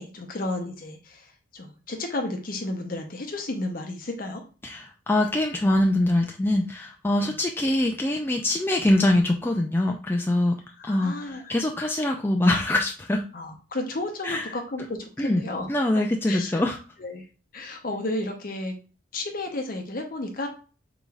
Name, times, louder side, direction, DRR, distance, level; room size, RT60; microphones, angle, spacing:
voice 1, 0.0-4.4 7.2-7.3 10.8-11.6 13.3-15.7 16.3-16.6 17.0-17.3 17.5-18.7 19.1-20.5, left 2 dB, 50° left, 4 dB, 0.7 m, -32 dB
voice 2, 4.6-10.6 10.8-11.2 11.5-13.2 14.2-14.5 15.2-15.4 15.7-16.8, left 1 dB, 10° left, 1 dB, 0.3 m, -23 dB
4.8 x 3.9 x 2.3 m, 0.36 s
head